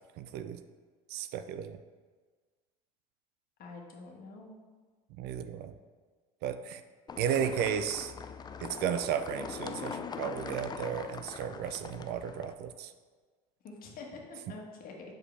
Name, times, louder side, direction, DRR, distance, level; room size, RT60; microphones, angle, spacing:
voice 1, 0.2-0.6 1.1-1.8 5.2-5.7 6.4-6.8 7.2-8.1 8.6-12.9, right 8 dB, 60° right, 10 dB, 0.5 m, -34 dB
voice 2, 3.6-4.5 13.6-14.9, left 3 dB, 50° left, 0 dB, 1.4 m, -46 dB
sound 1, 7.1-12.5, left 6 dB, 20° left, 0.3 m, -42 dB
6.3 x 4.9 x 3.3 m, 1.5 s
supercardioid pair, 85°, 19 cm